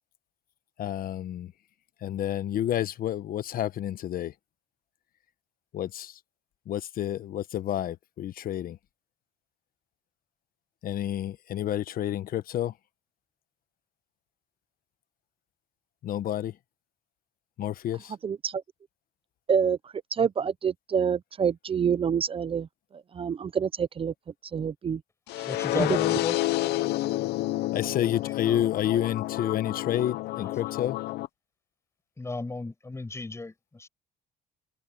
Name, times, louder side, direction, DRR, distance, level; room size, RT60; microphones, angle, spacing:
voice 1, 0.8-1.5 2.0-4.3 5.7-6.2 6.7-8.8 10.8-12.7 16.0-16.6 17.6-18.1 27.7-31.0, left 11 dB, 60° left, 1.2 m, -29 dB
voice 2, 18.2-18.6 19.5-19.8 20.1-22.7 23.1-24.1 24.5-25.0, right 7 dB, 35° right, 0.7 m, -27 dB
sound 1, 25.3-31.3, left 17 dB, 80° left, 0.7 m, -29 dB
voice 3, 25.4-26.4 28.5-28.6 32.2-33.9, left 3 dB, 15° left, 6.4 m, -34 dB
cardioid pair, 110°, 17 cm